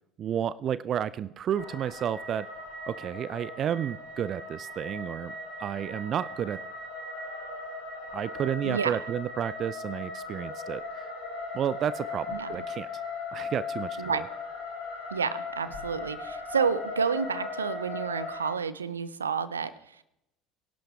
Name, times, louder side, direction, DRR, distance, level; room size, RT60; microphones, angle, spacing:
voice 1, 0.2-2.5 2.9-5.3 5.6-6.6 8.1-11.1 11.5-12.9 13.3-14.2, right 9 dB, 45° right, 17 dB, 0.5 m, -31 dB
sound 1, 1.5-18.5, left 3 dB, 85° left, 7.1 m, -38 dB
voice 2, 8.6-9.0 12.3-12.5 14.0-14.2 15.1-19.7, right 6 dB, 80° right, 16 dB, 0.7 m, -30 dB
23.5 x 11.5 x 3.5 m, 0.85 s
figure-of-eight pair, 65°, 0 cm